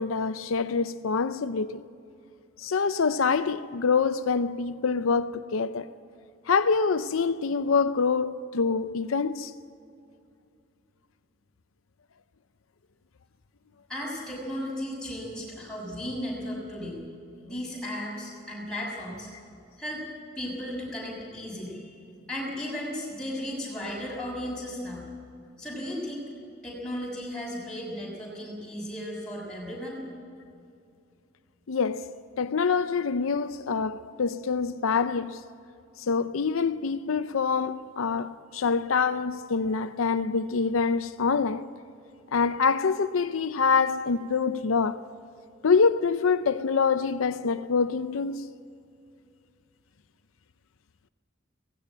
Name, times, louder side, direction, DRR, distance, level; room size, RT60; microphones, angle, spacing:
voice 1, 0.0-1.8 2.6-5.9 6.5-9.5 31.7-32.1 32.4-35.4 36.0-41.6 42.3-45.1 45.6-48.5, left 5 dB, 80° left, 0.5 m, -25 dB
voice 2, 13.9-17.0 17.4-19.3 19.8-20.0 20.3-22.0 22.3-25.1 25.6-26.3 26.6-30.0, left 1 dB, 5° left, 6.6 m, -35 dB
18.5 x 15.5 x 9.1 m
head